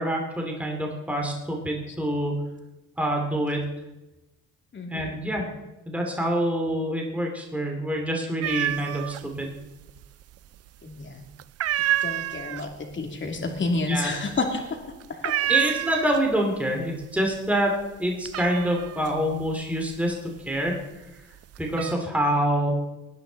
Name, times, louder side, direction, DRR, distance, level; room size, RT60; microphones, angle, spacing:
voice 1, 0.0-2.3 3.0-3.6 4.9-5.5 5.9-9.5 13.9-14.1 15.5-17.7 18.0-20.7 21.6-22.7, right 1 dB, 5° right, 0 dB, 2.6 m, -26 dB
voice 2, 4.7-5.2 10.8-11.2 12.0-14.6 15.1-15.5, left 3 dB, 40° left, 3 dB, 2.7 m, -30 dB
sound 1, 8.4-9.2 9.5-10.3 10.7-11.0 11.4-16.5 16.8-17.4 17.7-20.8 21.3-21.9, right 13 dB, 55° right, 0.4 m, -28 dB
19.0 x 10.5 x 4.0 m, 1.0 s
cardioid pair, 90°, 30 cm